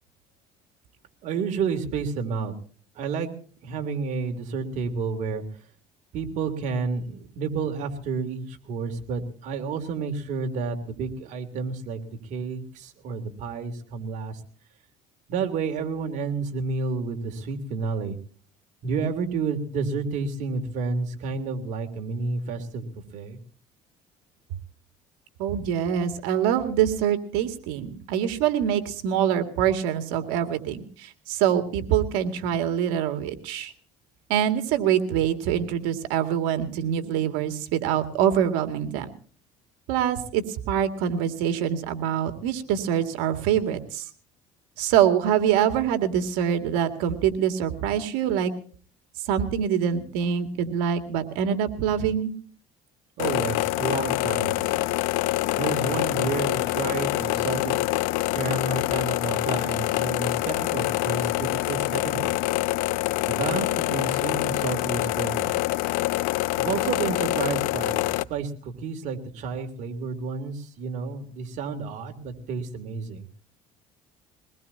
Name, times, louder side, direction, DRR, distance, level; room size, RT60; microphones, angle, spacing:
voice 1, 1.2-2.5 2.9-3.3 3.6-5.6 6.1-14.4 15.3-18.2 18.8-22.9 23.1-23.4 53.2-54.8 55.5-57.8 58.3-62.3 63.2-65.5 66.6-73.3, right 4 dB, 65° right, 5 dB, 3.1 m, -30 dB
voice 2, 25.4-33.7 34.3-39.1 39.9-44.1 44.8-48.5 49.3-52.3, right 9 dB, 90° right, 7 dB, 2.3 m, -25 dB
sound 1, 53.2-68.2, left 19 dB, 85° left, 0.6 m, -26 dB
23.0 x 20.0 x 2.8 m, 0.43 s
cardioid pair, 110°, 14 cm